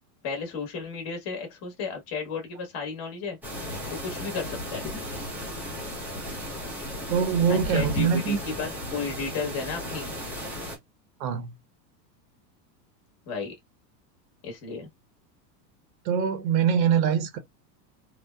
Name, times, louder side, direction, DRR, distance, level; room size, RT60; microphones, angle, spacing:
voice 1, 0.2-3.4 3.8-4.8 7.5-10.1 13.3-13.5 14.4-14.9, left 5 dB, 30° left, 1.0 m, -33 dB
sound 1, 3.4-10.8, left 1 dB, 5° right, 0.5 m, -35 dB
voice 2, 7.1-8.4 11.2-11.6 16.0-17.4, right 7 dB, 80° right, 0.9 m, -23 dB
2.8 x 2.1 x 2.2 m
supercardioid pair, 150°, 50 cm